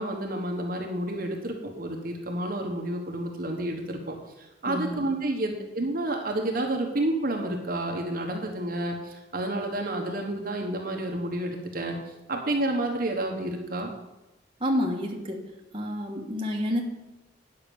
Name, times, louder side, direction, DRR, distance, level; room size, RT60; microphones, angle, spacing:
voice 1, 0.0-4.2 4.6-12.0 12.3-13.9, right 1 dB, 50° right, 2 dB, 1.2 m, -30 dB
voice 2, 4.6-5.0 14.6-15.4 15.7-16.9, equal, 30° right, 0 dB, 1.3 m, -29 dB
9.1 x 5.8 x 6.9 m, 1.0 s
head